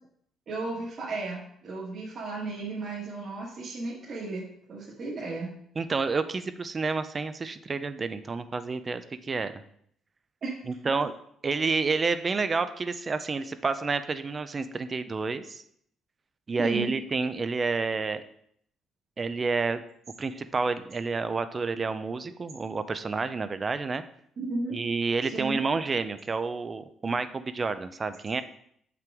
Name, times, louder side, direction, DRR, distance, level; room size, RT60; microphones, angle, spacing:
voice 1, 0.5-5.5 10.4-10.5 16.6-17.0 24.4-24.8 25.2-25.6, right 3 dB, 40° right, -8 dB, 1.6 m, -34 dB
voice 2, 5.8-9.5 10.7-11.1 11.4-15.6 16.5-18.2 19.2-19.8 20.2-24.0 24.7-28.4, right 4 dB, 25° right, 12 dB, 0.4 m, -29 dB
7.6 x 5.8 x 3.5 m, 0.68 s
cardioid pair, 170°, 0 cm